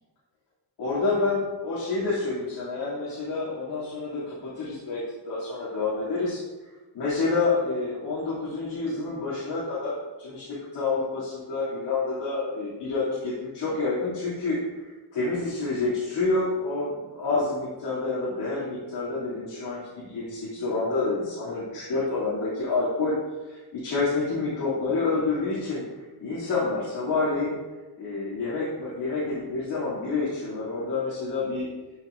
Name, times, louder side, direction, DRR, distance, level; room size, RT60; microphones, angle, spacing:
voice 1, 0.8-6.4 6.9-9.9 10.2-10.5 10.7-14.6 15.1-23.1 23.5-25.8 26.2-27.6 28.0-31.7, left 3 dB, 85° left, -10 dB, 2.8 m, -28 dB
13.5 x 6.0 x 2.6 m, 1.2 s
wide cardioid pair, 170°, 41 cm